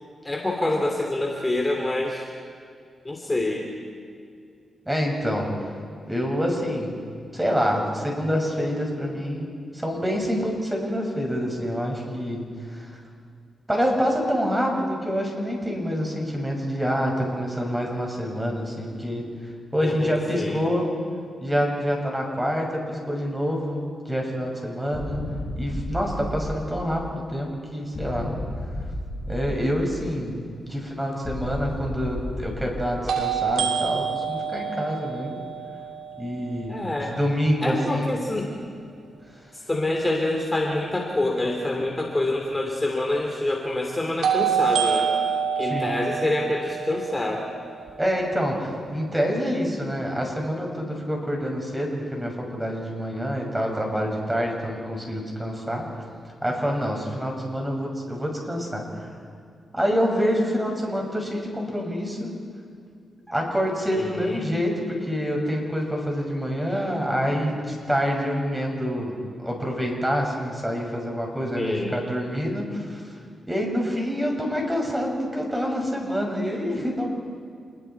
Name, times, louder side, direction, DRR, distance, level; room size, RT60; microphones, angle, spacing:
voice 1, 0.2-2.3 3.0-3.7 19.8-20.6 36.7-37.2 37.6-38.5 39.7-45.1 45.6-47.5 63.9-64.4 71.6-72.0, left 2 dB, 20° left, 1 dB, 2.8 m, -26 dB
voice 2, 4.9-5.5 6.1-7.0 7.3-12.9 13.7-19.3 19.7-21.0 21.4-25.2 25.5-28.3 29.3-35.4 36.2-38.1 45.6-45.9 48.0-55.9 56.4-59.1 59.7-62.3 63.3-73.0 73.5-77.1, equal, 10° right, 0 dB, 6.4 m, -27 dB
sound 1, 24.9-27.2 27.9-30.2 31.3-33.5, left 1 dB, 55° left, 7.6 m, -33 dB
sound 2, 31.1-31.2 33.1-37.0 44.2-48.2, right 7 dB, 80° right, 3.1 m, -27 dB
28.5 x 21.0 x 4.7 m, 2.3 s
cardioid pair, 65°, 0 cm